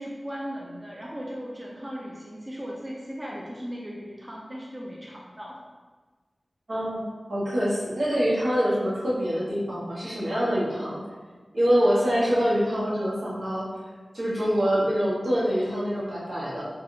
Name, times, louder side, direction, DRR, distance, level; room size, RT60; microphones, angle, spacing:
voice 1, 0.0-5.6, equal, 20° right, -4 dB, 0.5 m, -37 dB
voice 2, 6.7-11.0 11.5-13.7 14.1-16.7, equal, 70° right, -8 dB, 1.1 m, -25 dB
3.4 x 2.3 x 2.7 m, 1.4 s
wide cardioid pair, 55°, 0 cm